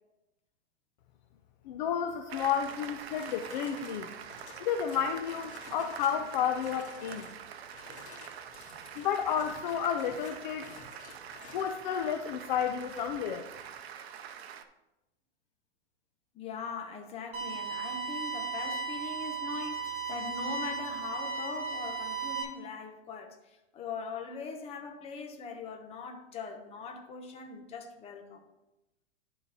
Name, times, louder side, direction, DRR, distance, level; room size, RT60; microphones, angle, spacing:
voice 1, 1.7-4.1 4.6-7.3 9.0-10.7 11.5-13.5, left 8 dB, 45° left, 0.6 m, -31 dB
Applause, 2.3-14.6, right 8 dB, 65° right, 0.7 m, -45 dB
sound 1, 2.7-6.2 6.5-7.4 7.7-11.8, left 4 dB, 80° left, 2.2 m, -52 dB
voice 2, 16.3-28.4, left 5 dB, 20° left, 0.9 m, -41 dB
sound 2, 17.3-22.4, right 5 dB, 20° right, 1.8 m, -35 dB
11.5 x 4.0 x 4.1 m
hypercardioid pair, 140°, 34 cm